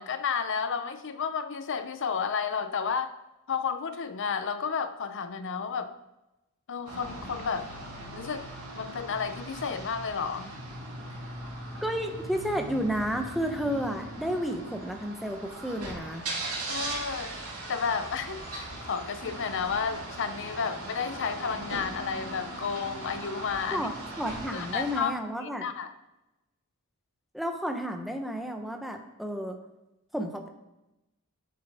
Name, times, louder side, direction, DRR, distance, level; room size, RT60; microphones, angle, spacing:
voice 1, 0.0-3.1 3.5-5.9 6.7-7.7 8.1-8.5 8.7-10.6 16.7-17.4 17.7-23.9 24.5-25.2 25.4-25.9, left 6 dB, 55° left, 10 dB, 0.7 m, -32 dB
sound 1, 6.9-25.0, right 2 dB, 85° right, 2.6 m, -39 dB
voice 2, 11.8-16.3 23.7-25.7 27.3-29.6 30.1-30.5, equal, ahead, 4 dB, 0.8 m, -32 dB
9.3 x 7.1 x 3.5 m, 0.95 s
head